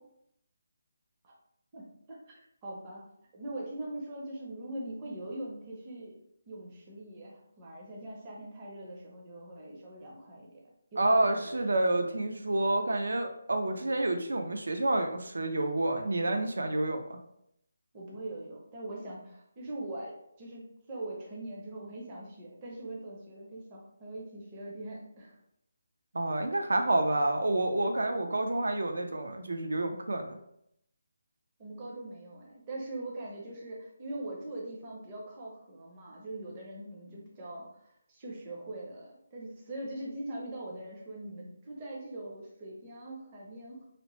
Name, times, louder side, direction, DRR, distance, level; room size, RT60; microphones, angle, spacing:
voice 1, 1.7-3.0 3.3-6.2 6.5-10.6 10.9-11.8 17.9-25.4 31.6-43.8, right 1 dB, 15° right, -3 dB, 0.4 m, -42 dB
voice 2, 11.0-17.2 26.1-30.4, right 2 dB, 85° right, 5 dB, 0.4 m, -29 dB
2.8 x 2.0 x 2.9 m, 0.75 s
hypercardioid pair, 175°, 0 cm